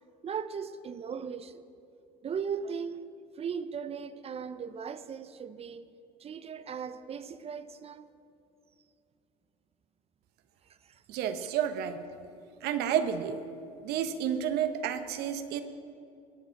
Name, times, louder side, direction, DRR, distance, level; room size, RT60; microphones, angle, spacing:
voice 1, 0.2-1.6 2.2-5.9 6.2-8.1 10.8-11.0, right 6 dB, 35° right, 0.7 m, -38 dB
voice 2, 11.1-12.0 12.6-13.4 13.8-15.6, right 9 dB, 60° right, 1.1 m, -30 dB
21.0 x 7.6 x 5.9 m
hypercardioid pair, 80°, 19 cm